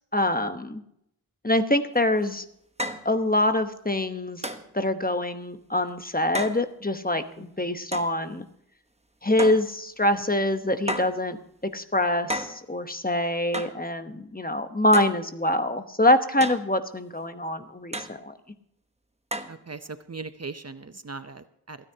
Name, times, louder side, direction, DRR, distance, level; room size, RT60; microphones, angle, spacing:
voice 1, 0.1-0.8 1.4-2.4 3.0-4.4 4.7-8.5 9.2-11.4 11.7-18.3, left 1 dB, 25° left, 8 dB, 1.0 m, -25 dB
sound 1, 1.9-2.0 2.8-3.1 4.4-4.7 6.3-6.6 7.9-8.1 9.4-9.7 10.9-11.2 12.3-12.6 13.5-13.8 14.9-15.2 16.4-16.7 17.9-18.2 19.3-19.6, equal, 15° right, 1.0 m, -32 dB
voice 2, 7.4-7.7 19.5-21.8, right 4 dB, 40° right, 11 dB, 0.7 m, -39 dB
28.0 x 9.9 x 2.8 m, 0.73 s
wide cardioid pair, 45°, 39 cm